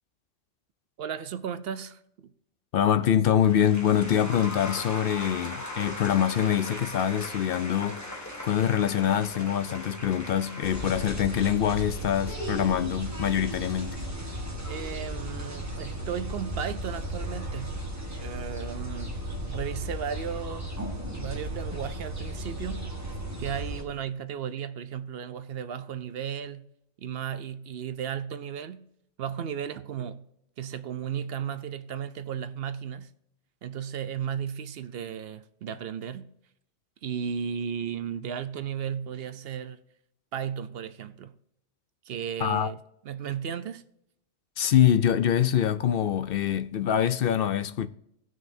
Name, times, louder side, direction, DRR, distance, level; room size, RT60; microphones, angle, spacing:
voice 1, 1.0-2.3 14.7-17.8 18.2-19.1 19.5-20.7 21.1-26.7 27.0-28.9 29.2-30.3 30.6-33.1 33.6-36.3 37.0-39.8 40.3-41.3 42.1-42.8 43.0-43.8, right 8 dB, 60° right, 0.7 m, -35 dB
voice 2, 2.7-8.0 8.4-14.0 42.4-42.7 44.6-47.9, left 10 dB, 60° left, 0.6 m, -24 dB
sound 1, 3.4-15.3, left 1 dB, 15° left, 1.6 m, -40 dB
sound 2, 10.6-23.8, right 1 dB, 15° right, 1.5 m, -35 dB
18.0 x 6.2 x 2.6 m
omnidirectional pair, 1.2 m